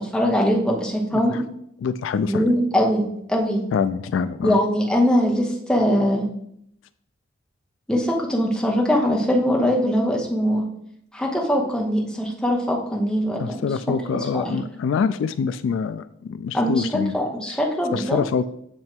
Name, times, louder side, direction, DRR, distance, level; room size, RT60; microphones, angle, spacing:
voice 1, 0.1-1.4 2.3-3.0 3.3-3.6 4.4-6.3 7.9-10.6 11.1-13.5 14.3-14.6 16.5-16.8 17.1-18.2, equal, 5° left, -1 dB, 0.9 m, -21 dB
voice 2, 1.1-1.4 1.8-2.5 3.7-4.6 13.4-17.1 17.5-17.6 17.9-18.5, left 6 dB, 75° left, 13 dB, 0.3 m, -25 dB
7.6 x 3.2 x 4.4 m, 0.73 s
head